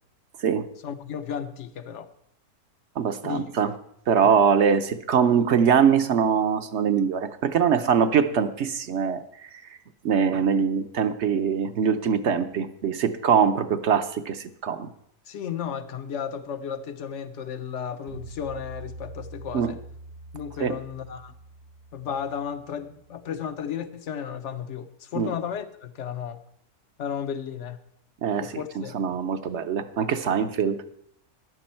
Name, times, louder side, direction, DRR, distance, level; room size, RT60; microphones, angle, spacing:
voice 1, 0.8-2.1 3.2-3.4 4.2-4.3 15.3-19.8 20.3-21.3 21.9-26.4 27.0-27.8 28.4-28.9, left 8 dB, 55° left, 11 dB, 1.0 m, -34 dB
voice 2, 3.0-3.7 4.1-9.6 10.0-14.9 19.5-19.7 20.6-20.8 25.1-25.3 28.2-28.5 28.8-30.8, right 7 dB, 55° right, 10 dB, 0.9 m, -23 dB
sound 1, 18.1-23.1, right 1 dB, 85° right, 3.6 m, -44 dB
14.0 x 11.0 x 4.4 m, 0.70 s
omnidirectional pair, 1.6 m